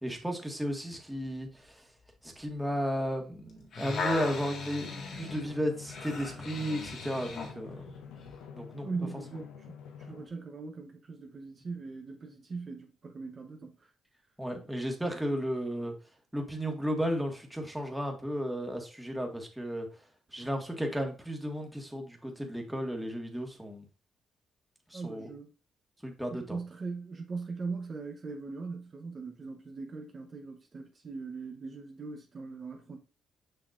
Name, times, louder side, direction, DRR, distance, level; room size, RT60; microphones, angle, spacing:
voice 1, 0.0-1.7 2.2-7.9 8.5-8.9 14.4-15.9 16.3-19.9 20.3-23.8 24.9-25.3 26.0-26.6, equal, 5° right, 1.6 m, -34 dB
sound 1, 3.5-7.6 8.2-8.4, left 4 dB, 65° left, 1.6 m, -37 dB
Drum, 4.2-10.3, left 6 dB, 90° left, 0.8 m, -47 dB
voice 2, 8.8-9.5 10.0-13.9 24.9-25.5 26.3-33.0, right 4 dB, 40° right, 0.9 m, -40 dB
6.7 x 5.8 x 2.5 m
cardioid pair, 90°, 0 cm